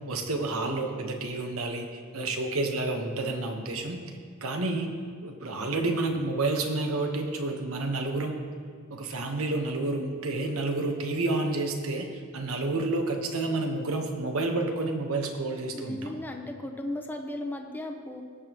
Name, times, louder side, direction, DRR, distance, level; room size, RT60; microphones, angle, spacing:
voice 1, 0.1-4.0 4.4-4.9 5.2-8.4 8.9-12.1 12.3-16.1, right 2 dB, 75° right, 4 dB, 1.2 m, -29 dB
voice 2, 15.7-18.2, left 1 dB, 10° left, 3 dB, 0.8 m, -36 dB
19.0 x 7.2 x 3.0 m, 2.1 s
head